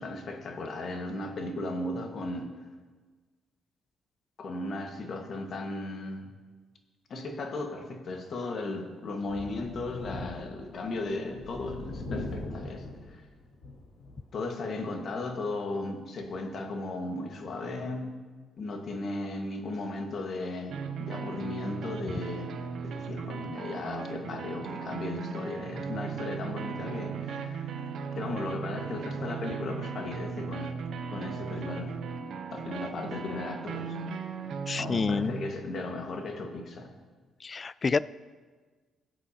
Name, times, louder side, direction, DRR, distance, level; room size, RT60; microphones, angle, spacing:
voice 1, 0.0-2.5 4.4-6.3 7.1-13.2 14.3-18.2 18.6-27.9 28.1-30.8 31.1-32.0 32.5-34.0 34.3-34.4 34.7-36.9, left 2 dB, 55° left, 3 dB, 1.6 m, -36 dB
Thunder, 9.2-14.3 14.8-14.9 16.2-16.3, left 2 dB, 80° left, 3.2 m, -41 dB
sound 1, 20.7-35.5, right 6 dB, 70° right, 0.8 m, -37 dB
voice 2, 34.7-35.4 37.4-38.0, left 4 dB, 35° left, 18 dB, 0.3 m, -28 dB
19.0 x 7.9 x 2.9 m, 1.4 s
cardioid pair, 90°, 0 cm